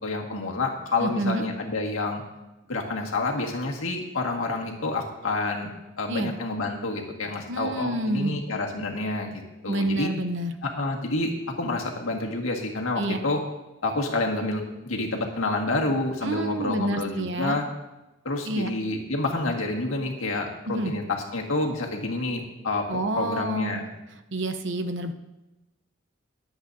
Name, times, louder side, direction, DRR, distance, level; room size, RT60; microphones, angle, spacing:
voice 1, 0.0-2.2 2.7-5.7 6.0-10.1 10.6-11.3 11.6-13.4 13.8-17.7 18.3-23.9, left 2 dB, 85° left, 0 dB, 1.8 m, -28 dB
voice 2, 1.0-1.4 6.1-6.3 7.5-8.4 9.7-10.5 13.0-13.2 16.2-17.6 18.4-18.7 20.6-20.9 22.9-23.8 24.3-25.1, right 2 dB, 60° right, 7 dB, 0.8 m, -28 dB
22.0 x 8.0 x 2.7 m, 1.0 s
head